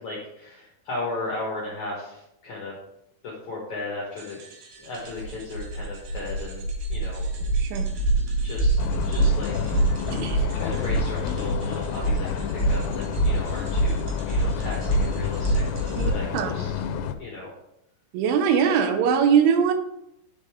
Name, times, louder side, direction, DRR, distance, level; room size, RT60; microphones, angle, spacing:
voice 1, 0.0-2.8 3.2-4.4 4.8-7.2 8.4-8.8 9.0-10.2 10.5-16.7 17.1-17.5, left 2 dB, 65° left, -4 dB, 1.8 m, -35 dB
sound 1, 4.2-16.1, right 2 dB, 65° right, 2.8 m, -26 dB
sound 2, 8.8-17.1, left 7 dB, 85° left, 2.6 m, -30 dB
voice 2, 10.1-10.5 16.0-16.5 18.1-19.7, right 7 dB, 85° right, 7 dB, 3.2 m, -22 dB
9.8 x 5.2 x 3.6 m, 0.82 s
omnidirectional pair, 5.4 m